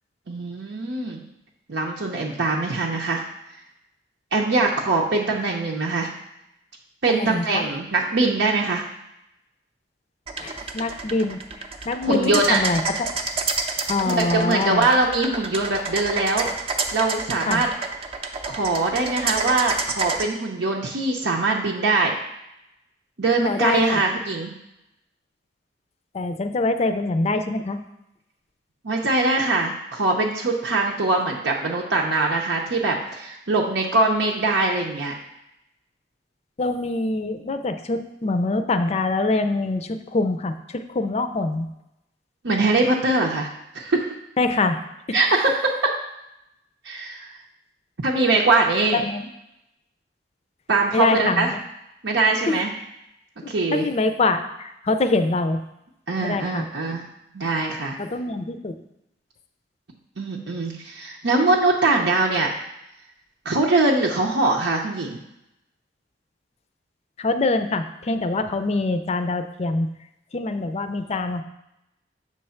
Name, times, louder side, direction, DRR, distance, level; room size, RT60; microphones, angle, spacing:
voice 1, 0.3-1.2 1.7-3.2 4.3-6.1 7.0-8.8 12.0-12.6 14.1-16.5 16.9-17.7 18.5-22.2 23.2-24.5 28.8-35.1 42.4-44.1 45.1-46.0 46.8-47.3 48.0-49.0 50.7-51.5 52.0-52.7 53.5-53.9 56.1-57.0 57.3-58.0 60.2-62.5 63.4-65.2, right 3 dB, 80° right, -2 dB, 0.8 m, -22 dB
voice 2, 7.1-7.7 10.4-13.1 13.9-14.9 17.5-17.6 23.4-24.0 26.1-27.8 36.6-41.7 44.4-44.8 48.9-49.2 50.9-51.6 52.5-52.6 53.4-55.6 56.2-56.7 58.0-58.8 67.2-69.9 70.3-71.4, left 3 dB, 35° left, 9 dB, 0.5 m, -24 dB
sound 1, 10.3-20.2, right 4 dB, 35° right, 0.6 m, -28 dB
7.5 x 3.3 x 5.7 m, 0.86 s
head